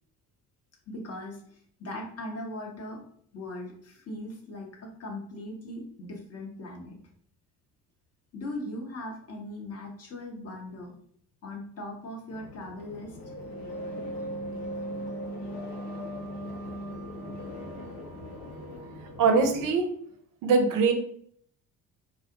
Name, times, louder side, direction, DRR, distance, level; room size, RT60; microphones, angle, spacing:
voice 1, 0.9-1.4 1.8-3.0 3.3-7.0 8.3-10.9 11.4-13.2, left 1 dB, 30° left, 0 dB, 0.7 m, -39 dB
sound 1, 12.3-19.7, equal, 70° left, 0.7 m, -38 dB
voice 2, 19.2-19.9 20.4-20.9, right 4 dB, 40° right, 5 dB, 0.5 m, -22 dB
2.5 x 2.0 x 2.7 m, 0.64 s
figure-of-eight pair, 50°, 49 cm